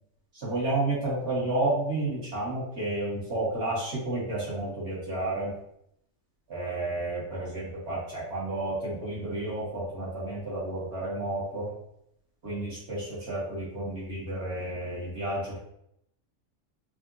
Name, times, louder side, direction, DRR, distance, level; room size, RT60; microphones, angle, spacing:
voice 1, 0.4-5.5 6.5-11.7 12.4-15.6, right 2 dB, 55° right, -7 dB, 1.7 m, -31 dB
4.3 x 2.5 x 2.5 m, 0.77 s
omnidirectional pair, 1.4 m